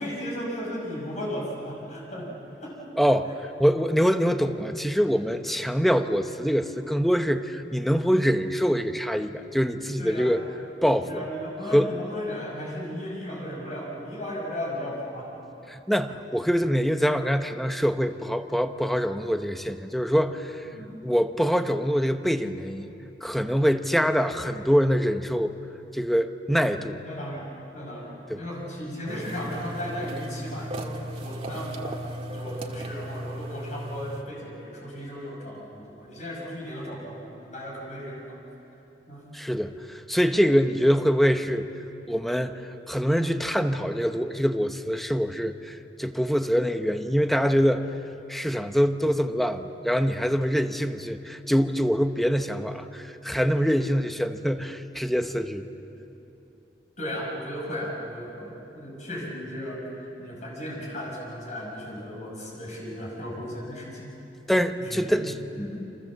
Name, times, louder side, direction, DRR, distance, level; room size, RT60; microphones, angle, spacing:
voice 1, 0.0-2.3 2.6-2.8 10.0-10.3 11.0-15.3 20.7-20.9 27.0-32.0 32.3-38.4 39.1-39.3 57.0-64.1 64.8-65.8, equal, 45° left, -2 dB, 5.8 m, -35 dB
voice 2, 3.0-10.4 10.8-11.2 11.7-11.9 15.7-20.7 21.0-22.9 23.2-25.5 25.9-27.0 28.3-28.4 39.3-41.7 42.1-47.9 48.3-55.7 64.5-65.3, equal, ahead, 8 dB, 0.9 m, -24 dB
sound 1, 29.1-34.2, right 1 dB, 35° right, 1.9 m, -36 dB
29.5 x 26.0 x 7.5 m, 3.0 s
head